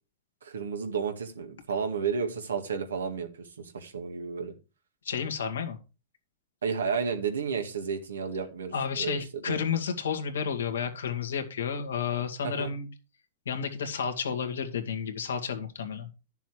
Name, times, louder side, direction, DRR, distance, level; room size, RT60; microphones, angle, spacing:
voice 1, 0.4-4.5 6.6-8.7 9.0-9.2 9.5-9.6 12.4-12.7, right 6 dB, 90° right, 2.0 m, -32 dB
voice 2, 5.0-5.8 8.7-12.9 13.5-16.1, left 7 dB, 85° left, 2.0 m, -31 dB
10.5 x 7.0 x 4.7 m
hypercardioid pair, 115°, 0 cm